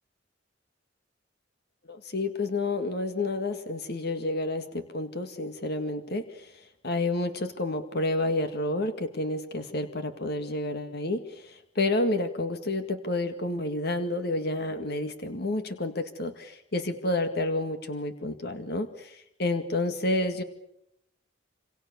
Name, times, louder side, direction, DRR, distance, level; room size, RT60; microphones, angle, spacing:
voice 1, 1.9-20.4, left 2 dB, 60° left, 8 dB, 2.0 m, -30 dB
27.5 x 27.0 x 6.9 m, 0.78 s
head